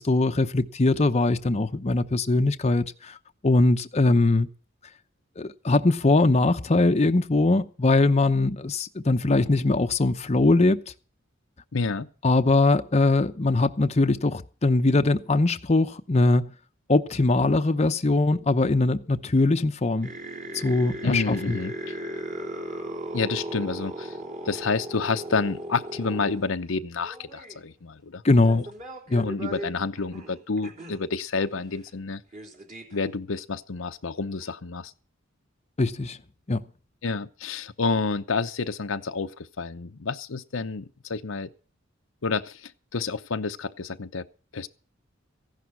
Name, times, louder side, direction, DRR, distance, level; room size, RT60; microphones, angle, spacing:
voice 1, 0.0-3.2 3.4-4.5 5.4-10.8 12.2-16.5 16.9-20.1 20.5-21.6 28.2-28.7 29.1-29.3 35.8-36.2 36.5-36.6, left 2 dB, 35° left, 0.7 m, -21 dB
voice 2, 11.7-12.1 21.0-21.8 23.1-24.2 24.4-28.2 28.5-28.6 29.2-32.2 32.9-34.9 37.0-41.5 42.2-44.3 44.5-44.7, left 4 dB, 80° left, 0.8 m, -29 dB
sound 1, 20.0-26.5 27.0-27.6 28.3-31.0 31.6-31.7 31.9-32.0 32.3-33.0, right 1 dB, 40° right, 3.1 m, -37 dB
15.5 x 11.0 x 5.9 m
head